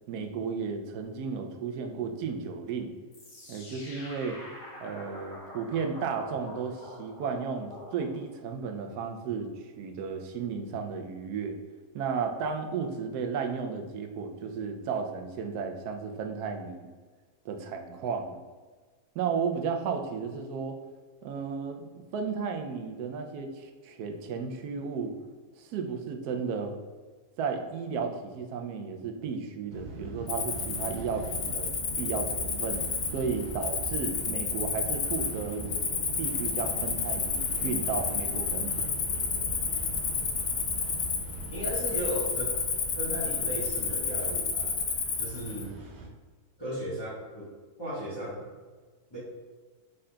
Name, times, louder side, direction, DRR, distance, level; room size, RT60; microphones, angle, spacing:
voice 1, 0.1-2.9 3.5-4.4 4.8-11.6 11.9-16.9 17.4-18.4 19.2-20.8 21.2-25.1 25.6-26.8 27.4-32.8 33.1-35.8 36.2-38.8, right 5 dB, 80° right, 5 dB, 1.1 m, -34 dB
sound 1, 3.1-8.4, left 1 dB, 85° left, 1.8 m, -46 dB
sound 2, 29.7-46.1, right 2 dB, 60° right, 0.8 m, -41 dB
Cricket, 30.3-45.6, left 5 dB, 65° left, 1.0 m, -31 dB
voice 2, 41.5-42.6 42.9-44.8 45.2-45.7 46.6-47.5 47.8-48.5 49.1-49.2, right 1 dB, 20° left, -9 dB, 1.0 m, -36 dB
5.4 x 3.7 x 2.2 m, 1.4 s
omnidirectional pair, 1.7 m